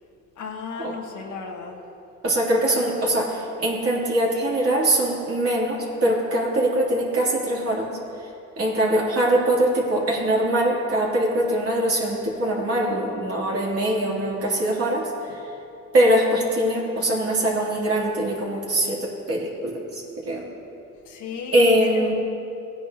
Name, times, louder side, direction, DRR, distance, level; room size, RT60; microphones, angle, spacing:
voice 1, 0.4-1.8 21.1-22.1, left 5 dB, 80° left, 2 dB, 1.4 m, -35 dB
voice 2, 2.2-7.9 8.6-15.4 15.9-20.5 21.5-22.1, right 1 dB, 50° right, -4 dB, 3.0 m, -22 dB
17.0 x 10.0 x 2.9 m, 2.9 s
cardioid pair, 90°, 30 cm